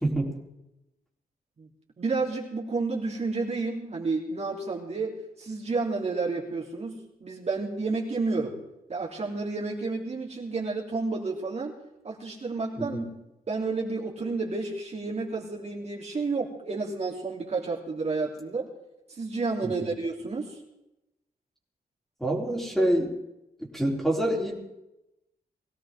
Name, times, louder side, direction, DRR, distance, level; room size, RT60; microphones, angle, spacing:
voice 1, 0.0-0.3 12.8-13.1 19.6-19.9 22.2-23.1 23.6-24.5, right 1 dB, ahead, -2 dB, 3.6 m, -26 dB
voice 2, 2.0-8.6 8.9-11.7 12.0-13.0 13.5-18.7 19.1-20.6, right 3 dB, 45° right, -2 dB, 3.2 m, -31 dB
21.5 x 17.0 x 3.7 m, 0.91 s
wide cardioid pair, 130°, 16 cm